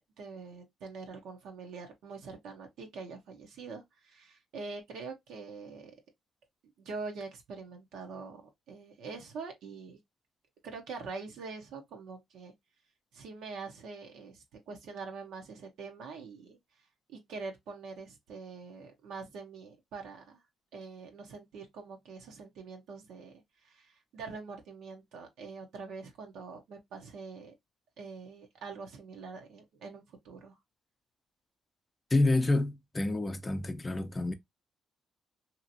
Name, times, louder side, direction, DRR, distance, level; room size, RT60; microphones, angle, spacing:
voice 1, 0.0-6.0 6.8-8.4 8.7-10.0 10.6-12.5 13.1-16.6 17.1-20.4 20.7-27.5 28.0-30.6, right 4 dB, 80° right, 0.8 m, -44 dB
voice 2, 32.1-34.3, left 2 dB, 25° left, 0.5 m, -28 dB
2.7 x 2.5 x 2.7 m
cardioid pair, 75°, 0 cm